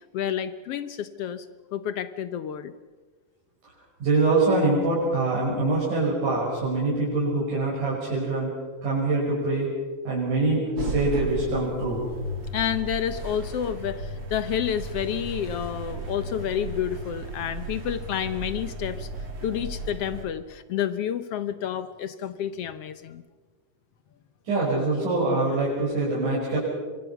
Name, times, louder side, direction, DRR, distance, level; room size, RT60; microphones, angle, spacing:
voice 1, 0.0-1.5 1.7-2.7 12.5-19.1 19.4-23.2, left 9 dB, 70° left, 12 dB, 1.5 m, -29 dB
voice 2, 4.0-8.5 8.8-9.7 10.1-12.1 24.5-26.6, right 2 dB, 80° right, -6 dB, 7.1 m, -24 dB
sound 1, 10.8-20.2, right 2 dB, 45° right, 3.8 m, -35 dB
25.5 x 24.0 x 5.8 m, 1.4 s
omnidirectional pair, 3.5 m